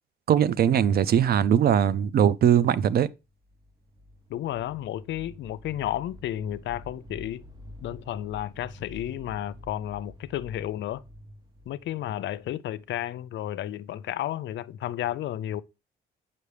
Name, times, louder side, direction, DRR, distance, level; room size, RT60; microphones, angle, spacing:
voice 1, 0.3-3.1, right 9 dB, 50° right, 0.4 m, -21 dB
sound 1, 3.2-13.1, left 1 dB, 20° right, 0.9 m, -47 dB
voice 2, 4.3-7.4 7.8-11.0 11.7-15.6, left 12 dB, 65° left, 0.4 m, -32 dB
6.8 x 5.5 x 3.2 m
cardioid pair, 90°, 20 cm